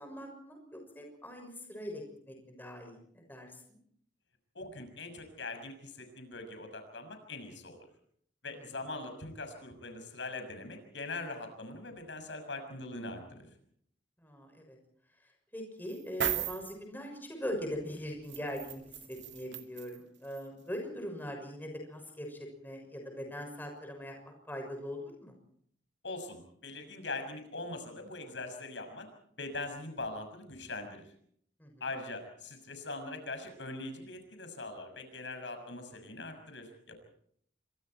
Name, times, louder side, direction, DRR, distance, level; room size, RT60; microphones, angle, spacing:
voice 1, 0.0-3.8 8.5-8.6 14.2-14.8 15.5-18.8 19.1-25.4 31.6-31.9, equal, 10° left, 2 dB, 6.3 m, -41 dB
voice 2, 4.5-7.8 8.4-13.5 26.0-29.1 29.4-31.1 31.8-37.0, left 2 dB, 75° left, 6 dB, 6.4 m, -42 dB
sound 1, 15.9-16.7 18.3-20.0 20.3-20.4, right 9 dB, 70° right, 2.2 m, -36 dB
28.5 x 25.5 x 4.5 m, 0.65 s
head